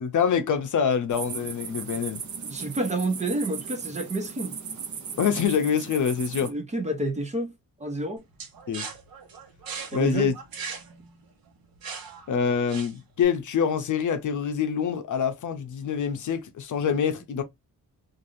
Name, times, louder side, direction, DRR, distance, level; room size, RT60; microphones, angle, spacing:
voice 1, 0.0-2.2 5.2-6.5 8.7-8.9 9.9-10.3 12.3-17.4, left 7 dB, 60° left, 0.6 m, -25 dB
sound 1, 1.1-6.5, right 7 dB, 55° right, 0.7 m, -37 dB
voice 2, 2.4-4.5 6.4-7.5 7.8-8.2 9.9-10.3, right 2 dB, 20° right, 0.6 m, -29 dB
sound 2, 8.4-13.2, right 6 dB, 90° right, 1.0 m, -39 dB
3.2 x 2.6 x 2.5 m
wide cardioid pair, 160°, 35 cm